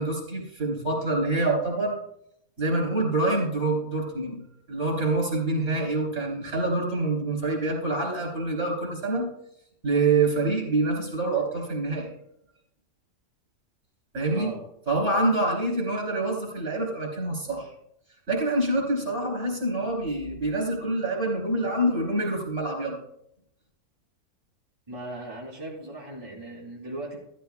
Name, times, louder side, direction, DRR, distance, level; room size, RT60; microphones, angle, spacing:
voice 1, 0.0-2.0 2.6-4.4 4.7-9.3 9.8-12.1 14.1-14.5 14.9-17.7 18.3-23.0, right 2 dB, 45° right, 0 dB, 4.2 m, -26 dB
voice 2, 14.3-14.6 24.9-27.2, right 2 dB, 25° right, -6 dB, 2.7 m, -38 dB
13.5 x 13.5 x 2.4 m, 0.76 s
omnidirectional pair, 1.6 m